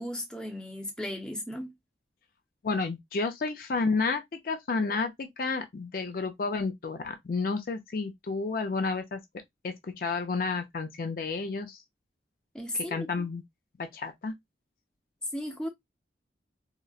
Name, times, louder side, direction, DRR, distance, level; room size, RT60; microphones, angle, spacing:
voice 1, 0.0-1.7 12.5-13.1 15.3-15.7, left 1 dB, 5° left, 0.6 m, -35 dB
voice 2, 2.6-9.2 9.6-11.8 12.9-13.4 13.8-14.3, left 4 dB, 50° left, 0.4 m, -31 dB
3.8 x 2.1 x 2.3 m
head